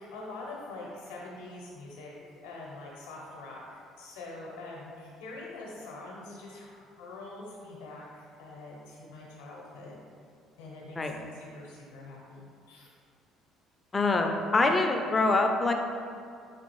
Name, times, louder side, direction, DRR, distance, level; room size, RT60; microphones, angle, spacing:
voice 1, 0.0-3.6 4.0-10.0 10.6-12.9, left 2 dB, 80° left, -3 dB, 0.7 m, -44 dB
voice 2, 13.9-15.7, left 3 dB, 30° left, 4 dB, 0.4 m, -25 dB
4.4 x 2.4 x 3.1 m, 2.3 s
supercardioid pair, 70°, 0 cm